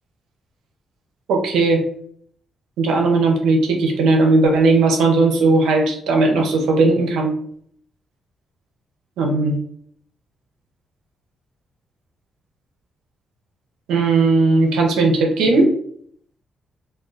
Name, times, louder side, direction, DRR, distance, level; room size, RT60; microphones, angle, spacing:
voice 1, 1.3-1.8 2.8-7.4 9.2-9.6 13.9-15.7, right 3 dB, 80° right, 2 dB, 0.6 m, -17 dB
2.3 x 2.3 x 3.8 m, 0.64 s
supercardioid pair, 50°, 0 cm